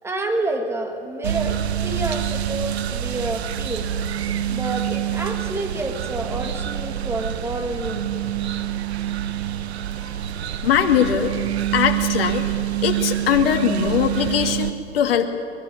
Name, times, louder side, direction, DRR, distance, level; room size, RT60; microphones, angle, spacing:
voice 1, 0.0-3.9 4.5-8.1, right 2 dB, 5° right, 4 dB, 2.2 m, -29 dB
sound 1, 1.2-14.7, right 11 dB, 60° right, 1.3 m, -26 dB
voice 2, 10.6-11.3 11.7-12.5 12.8-15.3, left 9 dB, 50° left, 5 dB, 2.4 m, -21 dB
23.0 x 21.0 x 8.7 m, 2.4 s
hypercardioid pair, 135°, 36 cm